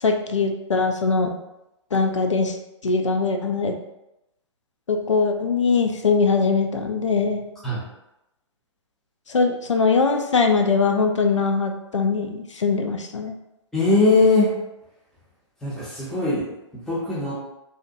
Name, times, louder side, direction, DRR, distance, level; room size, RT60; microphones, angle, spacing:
voice 1, 0.0-1.3 1.9-2.6 2.8-3.8 4.9-7.4 9.3-13.4, left 4 dB, 75° left, 4 dB, 0.4 m, -21 dB
voice 2, 13.7-14.5 15.6-16.5 16.9-17.3, left 3 dB, ahead, -7 dB, 0.5 m, -20 dB
2.6 x 2.1 x 2.5 m, 0.90 s
figure-of-eight pair, 120°, 15 cm